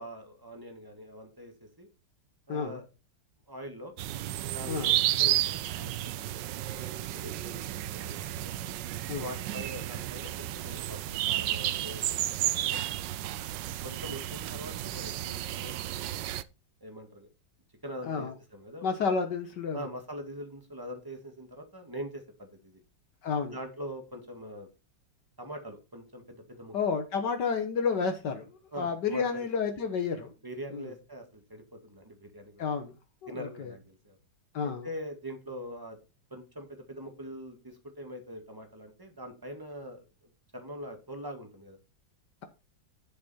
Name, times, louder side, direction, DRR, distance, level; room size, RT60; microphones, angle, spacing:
voice 1, 0.0-1.9 2.5-2.8 3.5-3.9 4.5-4.9 5.2-8.5 9.2-12.8 13.8-16.1 16.8-17.3 17.8-18.9 19.7-22.8 23.5-24.7 25.4-26.9 28.7-29.4 30.4-32.6 33.3-34.2 34.6-36.0 36.3-40.0 40.5-41.8, equal, 10° right, 1.8 m, -43 dB
voice 2, 2.5-2.8 4.7-4.9 9.1-9.3 18.0-18.3 18.8-19.9 23.2-23.6 26.7-30.3 30.7-30.9 32.6-32.9 33.2-33.7 34.5-34.9, left 5 dB, 65° left, 1.7 m, -31 dB
sound 1, 4.0-16.4, right 13 dB, 75° right, 1.2 m, -32 dB
11.0 x 5.8 x 4.3 m
omnidirectional pair, 2.1 m